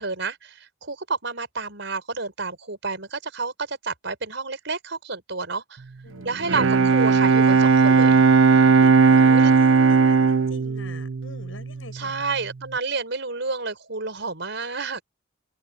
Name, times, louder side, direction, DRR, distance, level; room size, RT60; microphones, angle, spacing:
voice 1, 0.0-5.8 6.2-8.2 9.3-9.5 11.9-15.0, right 4 dB, 65° right, 6.1 m, -30 dB
voice 2, 6.0-6.5 8.6-12.3, left 3 dB, 85° left, 6.5 m, -44 dB
Bowed string instrument, 6.2-12.0, right 5 dB, 85° right, 0.6 m, -17 dB
open air
head